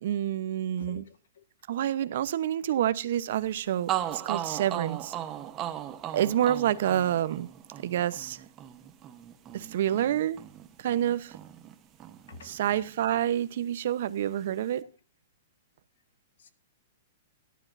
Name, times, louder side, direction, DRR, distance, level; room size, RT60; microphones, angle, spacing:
voice 1, 0.0-1.1 1.7-5.1 6.1-7.5 7.8-8.4 9.5-10.4 10.8-11.4 12.4-14.8, right 11 dB, 60° right, 0.8 m, -28 dB
voice 2, 0.8-1.4 12.3-12.5, left 5 dB, 80° left, 1.5 m, -47 dB
sound 1, 3.5-3.6 3.9-11.7 12.0-13.2, right 12 dB, 20° right, 1.0 m, -37 dB
18.0 x 11.5 x 2.6 m
hypercardioid pair, 160°, 0 cm